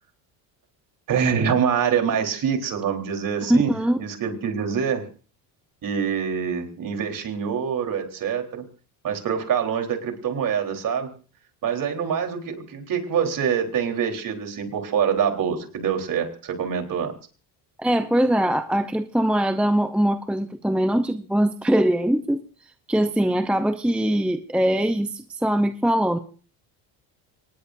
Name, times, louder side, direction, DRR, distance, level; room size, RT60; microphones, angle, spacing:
voice 1, 1.1-5.1 5.8-8.7 9.0-11.1 11.6-17.1, right 7 dB, 45° right, 4 dB, 3.8 m, -25 dB
voice 2, 3.5-4.0 17.8-22.4 22.9-26.2, right 1 dB, ahead, 9 dB, 0.7 m, -22 dB
24.5 x 20.0 x 2.6 m, 0.40 s
supercardioid pair, 105°, 45 cm